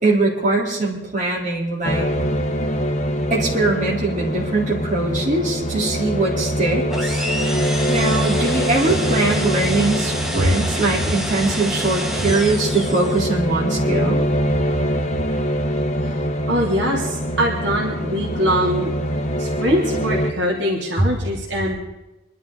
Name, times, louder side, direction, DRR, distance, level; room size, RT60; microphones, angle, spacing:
voice 1, 0.0-2.1 3.3-7.3 7.9-14.2, right 2 dB, 45° right, -3 dB, 3.5 m, -21 dB
sound 1, 1.8-20.3, equal, 40° left, 1.3 m, -24 dB
sound 2, 6.9-13.4, equal, ahead, 1.6 m, -29 dB
voice 2, 16.5-18.9 19.4-21.8, equal, 75° right, -2 dB, 2.9 m, -22 dB
25.5 x 11.5 x 3.9 m, 0.99 s
head